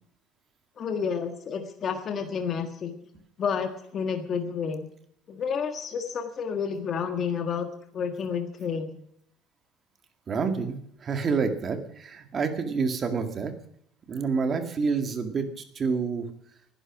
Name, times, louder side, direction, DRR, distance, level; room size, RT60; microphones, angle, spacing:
voice 1, 0.8-2.9 3.4-4.9 5.3-7.7 7.9-9.0, left 6 dB, 30° left, 6 dB, 1.6 m, -30 dB
voice 2, 10.3-13.5 14.1-16.3, right 5 dB, 25° right, 7 dB, 2.0 m, -28 dB
20.0 x 12.0 x 6.0 m, 0.72 s
cardioid pair, 175°, 0 cm